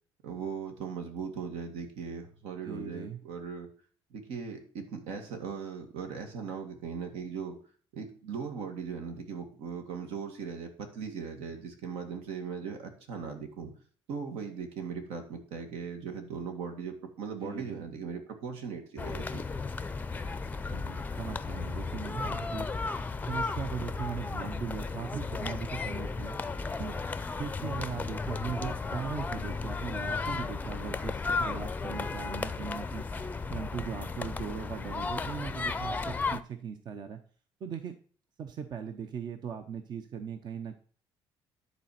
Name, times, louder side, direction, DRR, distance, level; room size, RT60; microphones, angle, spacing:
voice 1, 0.2-3.7 4.1-7.6 7.9-13.7 14.1-19.4, right 6 dB, 80° right, 5 dB, 1.9 m, -39 dB
voice 2, 2.6-3.2 17.4-17.8 20.7-22.7 23.3-26.4 26.8-27.0 27.3-33.0 33.5-37.2 37.6-38.0 38.4-40.8, right 7 dB, 50° right, 8 dB, 0.7 m, -39 dB
sound 1, 19.0-36.4, left 4 dB, 15° left, 0.5 m, -34 dB
10.5 x 4.2 x 5.8 m, 0.43 s
cardioid pair, 115°, 10 cm